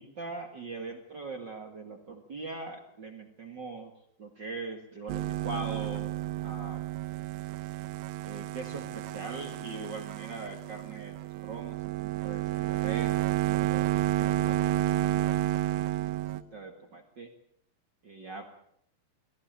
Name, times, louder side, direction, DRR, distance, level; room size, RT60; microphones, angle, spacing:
voice 1, 0.0-3.9 4.2-6.1 6.4-6.8 8.2-13.9 16.3-17.3 18.0-18.5, right 3 dB, 55° right, 3 dB, 1.2 m, -42 dB
sound 1, 5.1-16.4, right 15 dB, 80° right, 3.1 m, -31 dB
20.5 x 15.0 x 8.9 m, 0.71 s
omnidirectional pair, 5.0 m